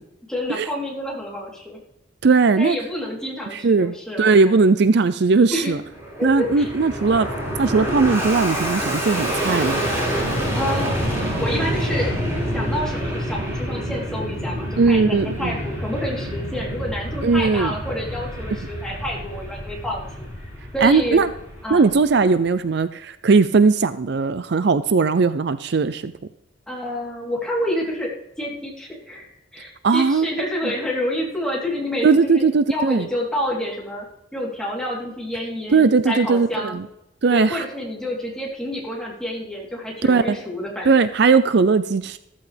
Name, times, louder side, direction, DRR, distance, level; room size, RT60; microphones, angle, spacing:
voice 1, 0.3-1.8 2.6-4.6 5.5-5.7 6.2-6.7 10.5-11.0 11.4-12.1 12.5-20.4 20.7-21.2 21.6-21.9 26.7-34.0 34.3-36.8 37.3-41.0, equal, 5° left, -4 dB, 3.5 m, -28 dB
voice 2, 2.2-2.8 3.5-5.8 6.2-7.3 7.6-9.8 14.8-15.5 17.2-17.7 20.8-21.3 21.7-26.1 29.8-30.3 32.0-33.1 35.7-36.9 37.2-37.6 40.0-40.4 40.9-42.2, right 4 dB, 60° right, 13 dB, 0.5 m, -18 dB
Fixed-wing aircraft airplane, 5.7-22.3, equal, 15° right, 5.5 m, -27 dB
14.0 x 14.0 x 3.4 m, 0.84 s
head